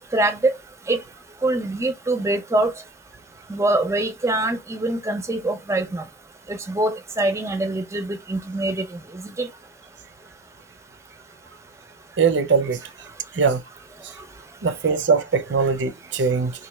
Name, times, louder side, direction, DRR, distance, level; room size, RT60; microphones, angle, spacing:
voice 1, 0.1-0.5 0.9-1.0 1.4-2.7 3.5-6.0 6.5-8.8 9.4-9.5, right 2 dB, 15° right, 0.5 m, -23 dB
voice 2, 12.2-12.8 13.3-13.6 14.6-16.5, right 5 dB, 80° right, 0.6 m, -21 dB
3.1 x 2.6 x 4.2 m
head